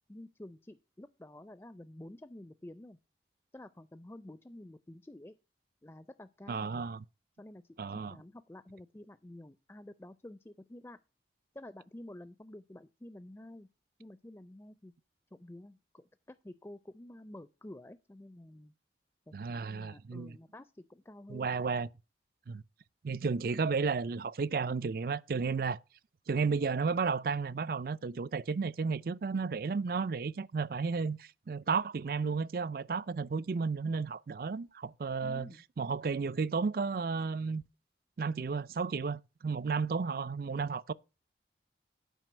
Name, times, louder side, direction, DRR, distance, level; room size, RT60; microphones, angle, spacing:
voice 1, 0.1-3.0 3.5-5.4 5.8-6.8 7.4-11.0 11.5-13.7 14.0-14.9 15.3-18.7 19.3-21.6 35.2-35.6, left 1 dB, 15° left, 0.4 m, -50 dB
voice 2, 6.5-7.0 7.8-8.2 19.3-20.4 21.3-21.9 22.5-22.6 23.0-25.8 26.3-37.6 38.2-40.9, right 5 dB, 55° right, 0.4 m, -33 dB
9.1 x 5.1 x 7.7 m
head